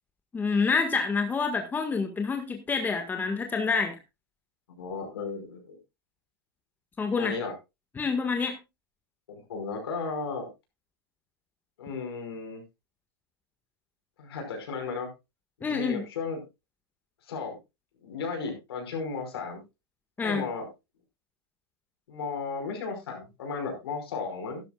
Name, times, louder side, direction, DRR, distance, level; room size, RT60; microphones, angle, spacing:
voice 1, 0.3-4.0 7.0-7.4 8.0-8.6 15.6-16.0 20.2-20.4, left 4 dB, 15° left, 5 dB, 1.7 m, -27 dB
voice 2, 4.8-5.8 7.1-7.5 9.3-10.5 11.8-12.6 14.2-15.1 15.6-16.4 17.3-17.6 18.0-19.6 20.2-20.7 22.1-24.6, left 4 dB, 70° left, 4 dB, 5.3 m, -34 dB
14.0 x 11.5 x 2.4 m, 0.23 s
hypercardioid pair, 120°, 13 cm